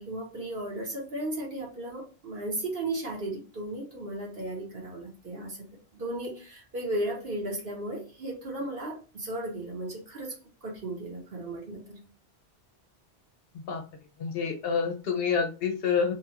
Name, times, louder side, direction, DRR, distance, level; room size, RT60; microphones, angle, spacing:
voice 1, 0.0-5.7 5.9-10.3 10.6-12.0, right 1 dB, 60° right, -3 dB, 1.1 m, -35 dB
voice 2, 14.2-16.1, left 6 dB, 70° left, 5 dB, 0.8 m, -27 dB
2.8 x 2.3 x 2.8 m, 0.34 s
omnidirectional pair, 1.1 m